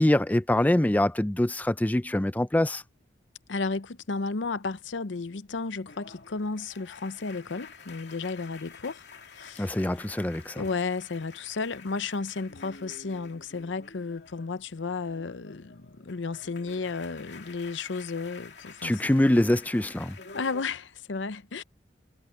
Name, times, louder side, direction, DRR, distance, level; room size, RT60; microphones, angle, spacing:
voice 1, 0.0-2.8 9.6-10.6 18.8-20.2, left 1 dB, 10° left, 0.4 m, -24 dB
voice 2, 3.5-9.0 9.3-9.7 10.6-19.0 20.3-21.6, left 4 dB, 90° left, 0.7 m, -33 dB
sound 1, 5.9-14.6 14.9-20.6, left 4 dB, 65° left, 2.8 m, -49 dB
head